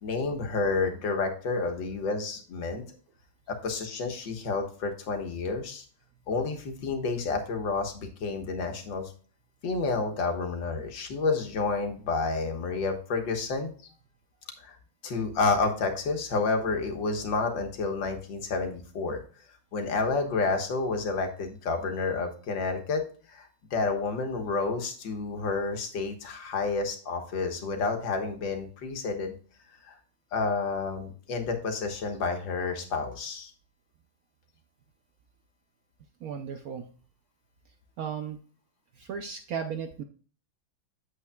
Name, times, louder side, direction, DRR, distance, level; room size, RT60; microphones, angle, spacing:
voice 1, 0.0-2.8 3.5-5.8 6.3-9.1 9.6-13.7 14.6-14.8 15.0-19.2 19.7-23.0 23.3-29.4 29.8-30.0 30.3-33.5, left 3 dB, 65° left, 4 dB, 2.0 m, -30 dB
voice 2, 36.2-36.9 38.0-38.4 39.0-40.0, right 7 dB, 75° right, 7 dB, 0.8 m, -35 dB
8.7 x 7.7 x 2.3 m, 0.41 s
omnidirectional pair, 2.3 m